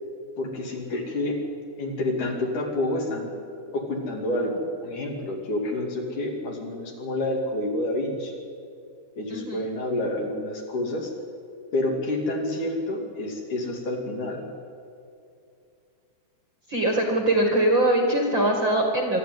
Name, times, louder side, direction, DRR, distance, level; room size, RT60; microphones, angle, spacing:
voice 1, 0.4-1.4 1.8-3.3 3.7-8.4 9.2-11.1 11.7-14.5 17.4-17.5, left 1 dB, 55° left, 1 dB, 3.8 m, -28 dB
voice 2, 16.7-19.2, right 1 dB, 35° right, 2 dB, 2.3 m, -22 dB
25.0 x 12.5 x 9.4 m, 2.4 s
omnidirectional pair, 4.6 m